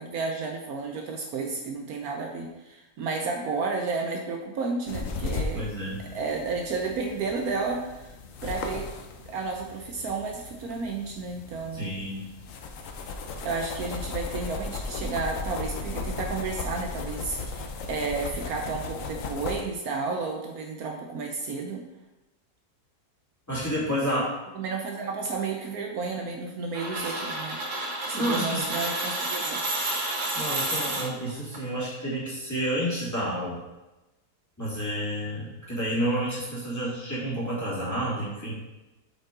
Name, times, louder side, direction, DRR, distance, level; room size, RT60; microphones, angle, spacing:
voice 1, 0.0-5.7 6.0-8.1 8.4-8.9 9.3-11.9 13.4-21.8 24.5-27.6 28.0-29.6, right 4 dB, 70° right, 2 dB, 1.2 m, -32 dB
sound 1, 4.9-19.6, left 4 dB, 60° left, 1.0 m, -36 dB
voice 2, 5.5-6.1 11.7-12.3 23.5-24.3 28.1-28.6 30.3-33.6 34.6-38.5, equal, 10° left, -9 dB, 2.7 m, -30 dB
sound 2, 26.7-31.6, right 1 dB, 55° right, 1.5 m, -30 dB
7.6 x 5.0 x 3.8 m, 1.0 s
omnidirectional pair, 1.7 m